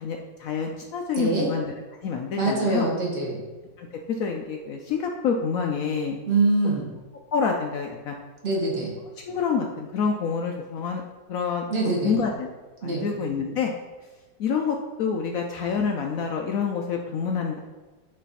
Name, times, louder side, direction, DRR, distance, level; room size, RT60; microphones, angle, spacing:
voice 1, 0.0-1.7 2.0-2.9 3.8-3.9 4.2-6.2 7.3-8.2 9.3-11.0 11.3-11.6 12.0-12.5 12.8-13.7 14.4-17.6, left 6 dB, 80° left, 2 dB, 0.7 m, -27 dB
voice 2, 1.2-1.5 2.4-3.4 6.3-6.8 8.4-8.9 11.7-12.1 12.8-13.1, right 3 dB, 35° right, -2 dB, 1.5 m, -24 dB
8.4 x 3.2 x 4.1 m, 1.2 s
omnidirectional pair, 2.0 m